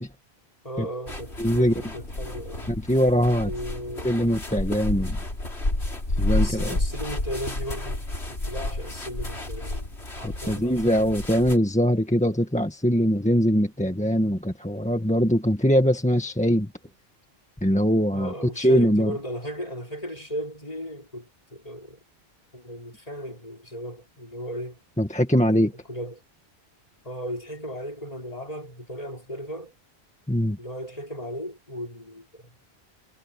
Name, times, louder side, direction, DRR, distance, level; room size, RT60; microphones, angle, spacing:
voice 1, 0.6-2.7 3.4-4.3 6.3-9.9 10.2-11.0 18.1-22.0 22.5-24.8 25.4-26.2 27.0-29.7 30.6-32.4, equal, 35° left, 5.5 m, -36 dB
sound 1, 1.1-11.6, left 2 dB, 90° left, 4.6 m, -30 dB
voice 2, 1.4-1.7 2.7-3.5 4.0-5.2 6.2-6.8 10.2-16.7 17.6-19.1 25.0-25.7 30.3-30.6, equal, 5° left, 1.7 m, -22 dB
omnidirectional pair, 1.1 m